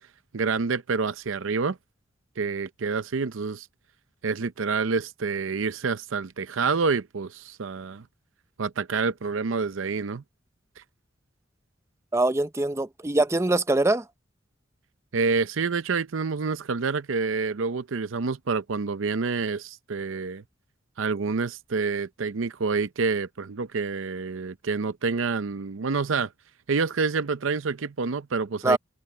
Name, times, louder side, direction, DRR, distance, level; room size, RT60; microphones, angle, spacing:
voice 1, 0.3-1.8 2.4-3.7 4.2-8.1 8.6-10.2 10.8-10.9 15.1-20.4 21.0-26.3 26.7-28.8, right 4 dB, 85° right, 0.6 m, -27 dB
voice 2, 12.1-14.0 28.6-28.8, right 2 dB, 15° right, 0.6 m, -23 dB
head